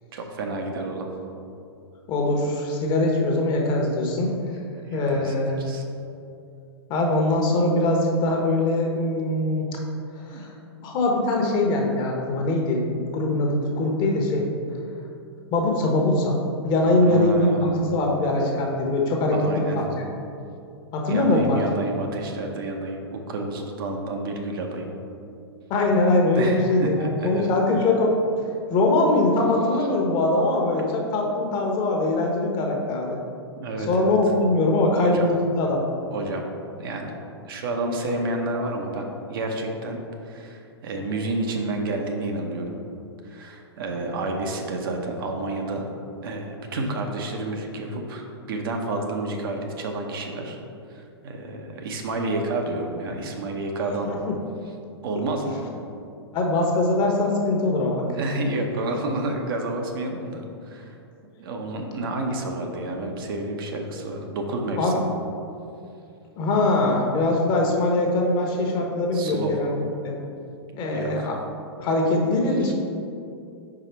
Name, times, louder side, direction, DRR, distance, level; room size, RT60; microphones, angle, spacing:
voice 1, 0.1-1.1 4.7-5.8 10.3-10.5 17.0-17.9 19.3-19.8 21.1-24.9 26.3-27.5 33.6-34.2 34.9-35.3 36.1-36.4 36.8-37.2 37.5-40.0 40.2-42.8 43.2-45.9 46.2-50.6 50.9-54.1 55.0-55.5 58.1-61.0 61.4-65.0 67.5-67.6 69.1-69.5 70.9-71.3 72.6-72.7, right 2 dB, 55° right, 2 dB, 0.8 m, -30 dB
voice 2, 2.1-4.3 4.9-5.6 6.9-9.7 10.3-10.5 10.8-14.5 15.5-16.4 16.6-19.8 20.9-21.6 25.7-28.1 28.7-33.2 33.9-35.8 54.1-54.3 56.3-58.0 64.8-65.0 66.4-69.8 70.0-70.1 70.8-71.4 71.8-72.7, left 2 dB, 30° left, 0 dB, 1.0 m, -22 dB
4.9 x 4.8 x 4.5 m, 2.6 s
figure-of-eight pair, 110°, 14 cm